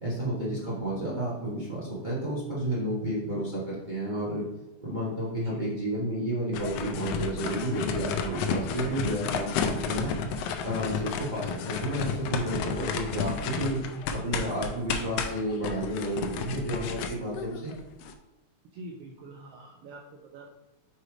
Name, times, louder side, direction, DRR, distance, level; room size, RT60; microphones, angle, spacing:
voice 1, 0.0-4.4 4.8-10.1 10.6-13.8 14.1-17.7, right 1 dB, 40° right, -8 dB, 0.6 m, -31 dB
sound 1, 6.5-18.1, left 6 dB, 85° left, 1.4 m, -32 dB
voice 2, 18.7-20.5, right 2 dB, 80° right, 1 dB, 1.3 m, -45 dB
6.5 x 3.2 x 4.7 m, 1.0 s
omnidirectional pair, 3.4 m